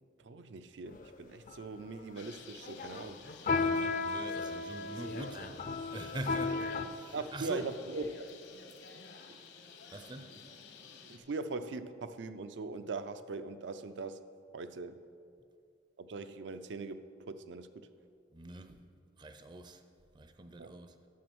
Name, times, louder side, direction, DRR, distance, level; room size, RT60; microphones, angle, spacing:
voice 1, 0.2-3.2 7.1-8.1 11.1-14.2 14.5-15.0 16.0-17.9 20.6-20.7, right 3 dB, 75° right, 0.5 m, -41 dB
sound 1, 0.9-1.1 1.5-2.0 2.6-6.9, left 4 dB, 45° left, 0.5 m, -34 dB
Bird, 2.2-11.2, left 5 dB, 70° left, 1.0 m, -52 dB
voice 2, 3.5-7.7 9.9-10.4 18.3-18.8 19.2-19.8 20.1-21.0, right 1 dB, 25° right, 0.5 m, -44 dB
9.4 x 6.9 x 6.1 m
head